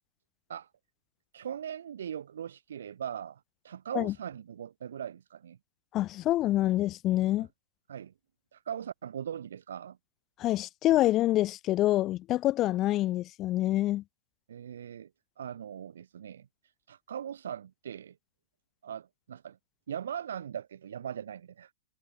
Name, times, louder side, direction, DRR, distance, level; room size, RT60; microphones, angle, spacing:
voice 1, 1.3-5.6 7.9-8.1 8.5-10.0 14.5-15.1 15.4-16.5 16.9-18.1 18.8-19.6 19.9-21.7, right 9 dB, 75° right, 4.1 m, -40 dB
voice 2, 5.9-7.5 10.4-14.0, left 15 dB, 35° left, 0.5 m, -26 dB
hypercardioid pair, 110°, 0 cm